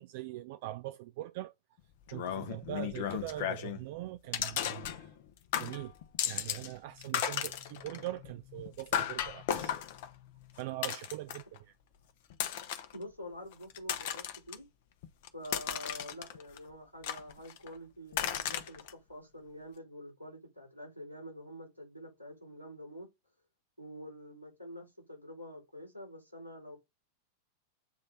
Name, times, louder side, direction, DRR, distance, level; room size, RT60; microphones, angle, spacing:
voice 1, 0.0-1.5 2.1-5.1 5.6-5.9 6.2-9.8 10.6-11.7, right 15 dB, 50° right, 0.4 m, -42 dB
sound 1, 2.1-3.8 4.3-5.3 5.5-6.7 7.0-11.6 12.3-13.0 13.5-14.6 15.0-16.6 17.0-17.7 18.1-18.9, left 10 dB, 50° left, 0.9 m, -35 dB
voice 2, 12.9-14.7 15.3-18.8 19.1-23.1 23.8-26.8, equal, 85° right, 5.0 m, -47 dB
8.4 x 3.3 x 4.1 m
figure-of-eight pair, 90°, 0 cm